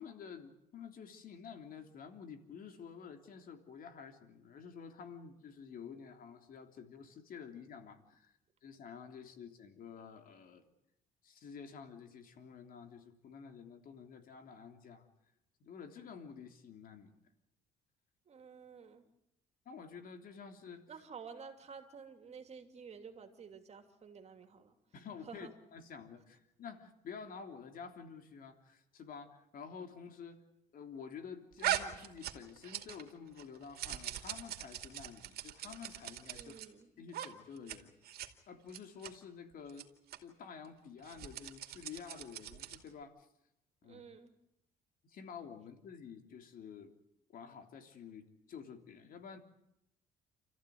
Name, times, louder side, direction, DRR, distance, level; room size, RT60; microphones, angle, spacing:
voice 1, 0.0-10.6 11.2-15.1 15.6-17.3 19.6-20.8 24.9-30.4 30.7-36.5 37.0-38.2 38.5-39.9 40.2-43.3 43.8-44.0 45.0-46.9 47.3-49.4, left 6 dB, 55° left, 6 dB, 3.4 m, -50 dB
voice 2, 18.3-19.0 20.9-24.7 25.3-25.5 36.3-36.9 43.8-44.3, right 6 dB, 40° right, 6 dB, 3.0 m, -51 dB
sound 1, 31.6-33.1 33.4-36.7 37.1-37.3 37.6-37.8 38.0-38.3 38.7-39.1 39.7-39.8 40.1-40.2 41.0-42.9, right 12 dB, 65° right, 2.5 m, -40 dB
29.0 x 14.5 x 9.5 m, 0.84 s
cardioid pair, 110°, 17 cm